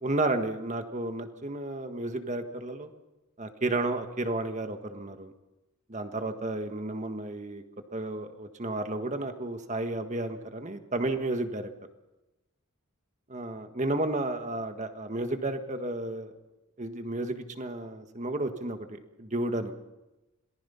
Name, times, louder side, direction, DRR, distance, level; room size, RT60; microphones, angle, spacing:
voice 1, 0.0-2.9 3.4-5.3 5.9-7.6 7.9-11.7 13.3-16.3 16.8-19.7, right 2 dB, 30° right, 7 dB, 1.5 m, -32 dB
27.0 x 19.0 x 5.7 m, 1.0 s
head